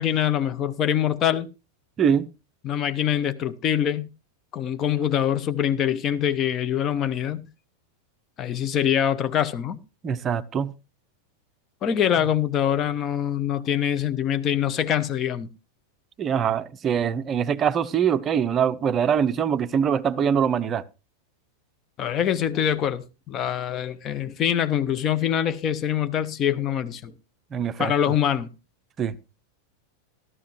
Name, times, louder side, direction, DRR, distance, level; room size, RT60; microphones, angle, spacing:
voice 1, 0.0-1.5 2.6-4.1 4.5-7.5 8.4-9.8 11.8-15.5 22.0-27.1 27.8-28.5, left 9 dB, 30° left, 0.8 m, -24 dB
voice 2, 2.0-2.3 10.0-10.7 16.2-20.8 27.5-27.9 29.0-29.2, right 8 dB, 25° right, 0.6 m, -23 dB
13.5 x 12.5 x 3.0 m
figure-of-eight pair, 90°, 0 cm